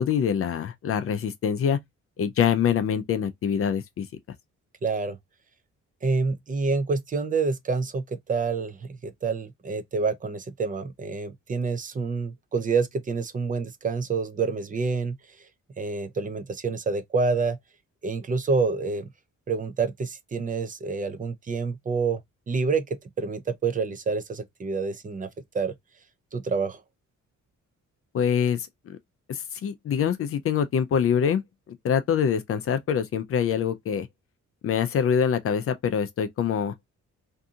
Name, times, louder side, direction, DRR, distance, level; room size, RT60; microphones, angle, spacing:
voice 1, 0.0-1.8 2.2-4.1 28.1-29.0 29.3-31.4 31.7-34.1 34.6-36.7, left 8 dB, 50° left, 0.4 m, -25 dB
voice 2, 4.8-5.2 6.0-15.2 15.8-17.6 18.0-19.1 19.5-22.2 22.5-25.3 25.5-25.7 26.3-26.8, right 4 dB, 30° right, 0.4 m, -27 dB
2.6 x 2.6 x 2.3 m
cardioid pair, 130°, 30 cm